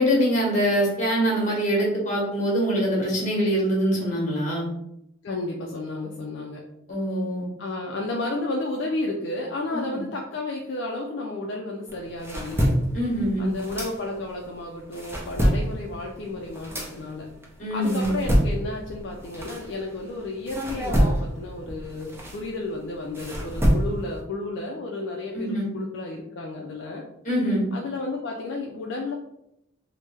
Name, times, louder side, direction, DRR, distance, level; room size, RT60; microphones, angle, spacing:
voice 1, 0.0-4.7 6.9-7.5 12.9-13.5 17.6-18.1 25.3-25.7 27.2-27.6, equal, 35° left, -3 dB, 1.1 m, -24 dB
voice 2, 5.2-6.6 7.6-12.7 13.4-17.3 17.7-27.0 27.7-29.1, left 2 dB, 60° left, -1 dB, 0.4 m, -32 dB
sound 1, 11.9-14.4 14.8-20.1 20.5-24.2, equal, 10° right, 0.5 m, -26 dB
3.2 x 2.1 x 3.3 m, 0.80 s
head